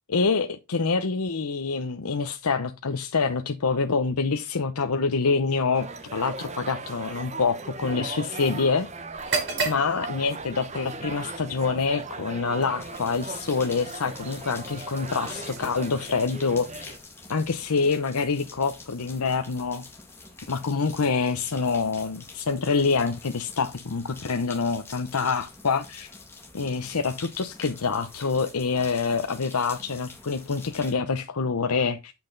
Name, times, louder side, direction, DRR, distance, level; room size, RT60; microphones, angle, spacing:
voice 1, 0.1-5.9 6.1-8.9 9.6-16.9 17.3-19.8 20.5-26.1 26.5-32.1, left 4 dB, 85° left, 0.8 m, -26 dB
sound 1, 5.7-17.0, right 3 dB, 30° right, 0.9 m, -38 dB
sound 2, 9.1-17.0, right 4 dB, 50° right, 3.3 m, -37 dB
sound 3, 12.8-30.9, left 3 dB, 10° left, 1.7 m, -46 dB
8.7 x 5.9 x 3.9 m
head